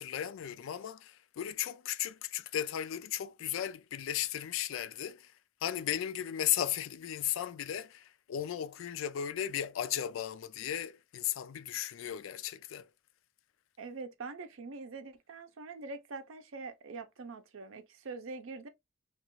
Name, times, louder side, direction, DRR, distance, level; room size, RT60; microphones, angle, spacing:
voice 1, 0.0-5.3 5.6-12.9, left 10 dB, 75° left, 0.3 m, -35 dB
voice 2, 13.8-18.7, right 4 dB, 85° right, 0.5 m, -44 dB
2.9 x 2.4 x 2.9 m
head